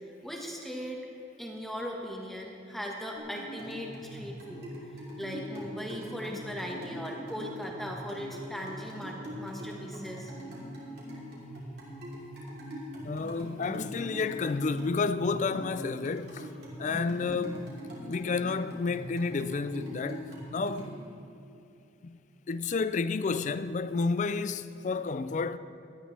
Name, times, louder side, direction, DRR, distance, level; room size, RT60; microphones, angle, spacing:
voice 1, 0.2-1.0 1.4-4.7 5.2-10.3 11.2-11.4, equal, ahead, 1.4 m, -39 dB
sound 1, 3.2-20.9, equal, 55° right, 3.4 m, -42 dB
voice 2, 13.0-16.5 16.8-17.7 18.0-20.9 22.0-22.2 22.5-25.6, left 4 dB, 40° left, 0.4 m, -31 dB
18.5 x 13.0 x 3.3 m
head